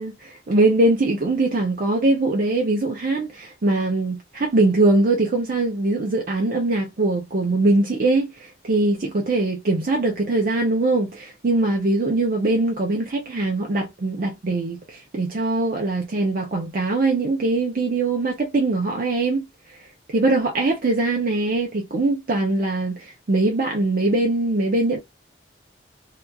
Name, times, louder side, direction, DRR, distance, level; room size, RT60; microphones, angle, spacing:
voice 1, 0.0-25.0, right 2 dB, 50° right, 0.5 m, -22 dB
2.9 x 2.3 x 2.2 m
head